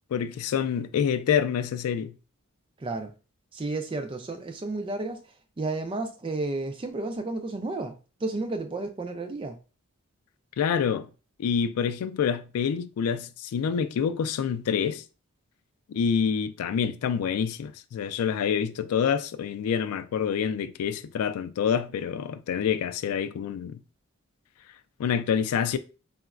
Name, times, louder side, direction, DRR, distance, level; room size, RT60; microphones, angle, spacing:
voice 1, 0.1-2.1 10.6-11.1 11.4-15.0 15.9-23.8 25.0-25.8, left 7 dB, 85° left, 0.3 m, -27 dB
voice 2, 2.8-3.1 3.5-5.2 5.6-8.0 8.2-9.6, right 2 dB, 25° right, 0.3 m, -32 dB
3.8 x 2.1 x 2.4 m
head